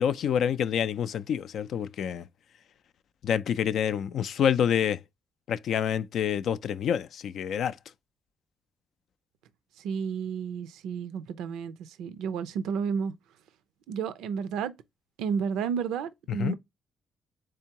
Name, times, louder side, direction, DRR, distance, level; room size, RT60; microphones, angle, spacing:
voice 1, 0.0-2.3 3.2-5.0 5.5-7.8 16.4-16.6, left 8 dB, 70° left, 0.3 m, -27 dB
voice 2, 9.8-13.1 13.9-14.7 15.2-16.6, right 6 dB, 90° right, 0.4 m, -31 dB
3.7 x 3.4 x 2.8 m
cardioid pair, 90°, 0 cm